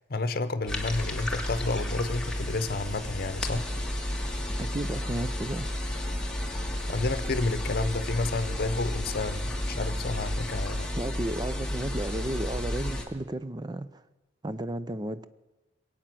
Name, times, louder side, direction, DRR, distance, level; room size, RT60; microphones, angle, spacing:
voice 1, 0.1-3.6 6.9-10.9, left 3 dB, 55° left, 0.9 m, -30 dB
sound 1, 0.7-13.0, left 1 dB, 5° left, 1.6 m, -32 dB
voice 2, 4.6-5.7 11.0-14.0 14.4-15.2, right 1 dB, 20° right, 0.5 m, -33 dB
21.0 x 8.8 x 7.7 m
head